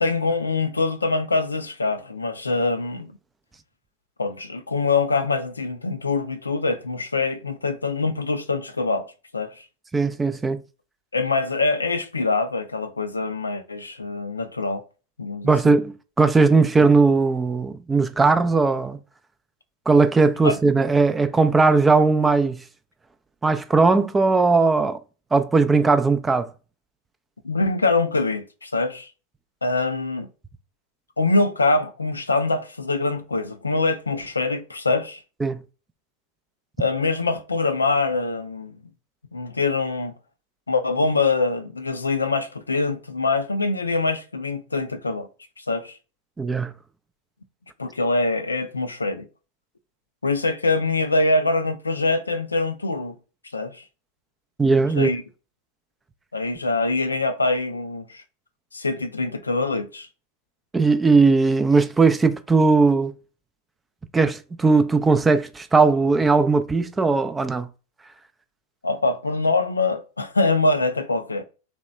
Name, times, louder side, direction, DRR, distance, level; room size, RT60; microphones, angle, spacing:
voice 1, 0.0-3.1 4.2-9.6 11.1-14.8 15.2-15.8 20.4-20.6 27.4-29.1 29.6-30.3 31.2-35.2 36.8-38.8 39.3-40.1 40.7-45.3 45.6-46.0 47.8-49.3 50.2-53.2 53.5-53.8 55.0-55.2 56.3-58.2 58.7-60.1 68.8-71.4, left 3 dB, 80° left, 0.4 m, -24 dB
voice 2, 9.9-10.6 15.4-19.0 19.9-22.6 23.4-25.0 25.3-26.5 35.4-35.6 46.4-46.7 54.6-55.1 60.7-63.1 64.1-67.7, right 4 dB, 10° right, 0.3 m, -18 dB
2.8 x 2.1 x 3.2 m
figure-of-eight pair, 90°, 0 cm